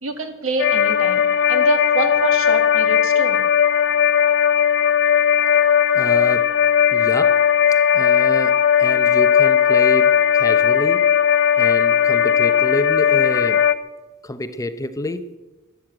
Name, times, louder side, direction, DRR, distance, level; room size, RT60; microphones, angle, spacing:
voice 1, 0.0-3.4, right 2 dB, 75° right, 2.2 m, -26 dB
sound 1, 0.6-13.8, left 8 dB, 55° left, 0.8 m, -17 dB
voice 2, 5.9-6.6 6.9-7.5 7.9-11.1 11.6-13.7 14.2-15.3, left 1 dB, 15° left, 0.7 m, -28 dB
14.0 x 12.0 x 8.7 m
head